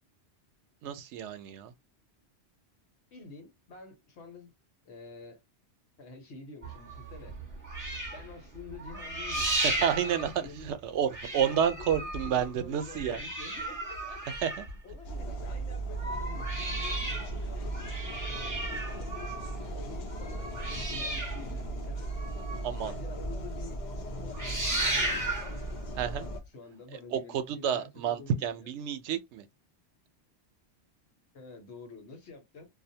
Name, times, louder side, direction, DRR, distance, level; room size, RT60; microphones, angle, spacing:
voice 1, 0.8-1.7 9.6-10.3 10.6-13.2 14.4-14.6 22.6-22.9 26.0-26.3 27.1-29.5, right 8 dB, 85° right, 0.9 m, -30 dB
voice 2, 3.1-4.5 4.8-5.4 6.0-7.3 8.1-17.7 18.2-22.1 22.8-23.8 24.2-25.3 26.5-28.7 31.3-32.7, left 3 dB, 80° left, 1.2 m, -48 dB
sound 1, 6.6-10.8 11.1-15.3 15.8-22.9 23.2-23.4 23.7-24.0 24.2-25.6 26.4-26.5, right 2 dB, 20° right, 0.9 m, -35 dB
sound 2, 15.0-26.4, right 2 dB, 50° left, 0.6 m, -37 dB
2.5 x 2.0 x 2.6 m
omnidirectional pair, 1.1 m